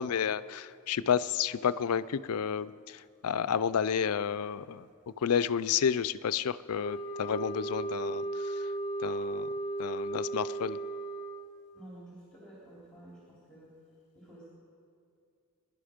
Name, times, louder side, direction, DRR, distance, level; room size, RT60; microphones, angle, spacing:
voice 1, 0.0-4.9 5.2-8.6 9.0-9.5 9.8-10.8, left 7 dB, 85° left, 17 dB, 0.4 m, -31 dB
sound 1, 6.8-11.7, right 2 dB, 25° left, 1.1 m, -36 dB
voice 2, 11.7-13.7 14.1-14.5, right 1 dB, 5° left, -6 dB, 3.2 m, -51 dB
23.5 x 11.0 x 5.1 m, 2.4 s
head